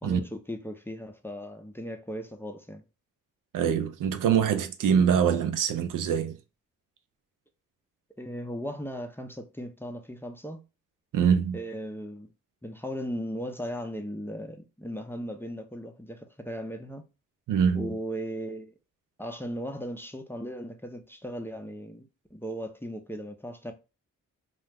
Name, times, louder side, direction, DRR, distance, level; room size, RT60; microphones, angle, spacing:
voice 1, 0.0-2.8 8.2-10.6 11.5-12.3 12.6-17.1 17.7-18.7 19.2-23.7, equal, 5° left, 0.5 m, -37 dB
voice 2, 3.5-6.4 11.1-11.6 17.5-17.9, right 7 dB, 70° right, 0.5 m, -24 dB
2.4 x 2.0 x 3.3 m
supercardioid pair, 45°, 33 cm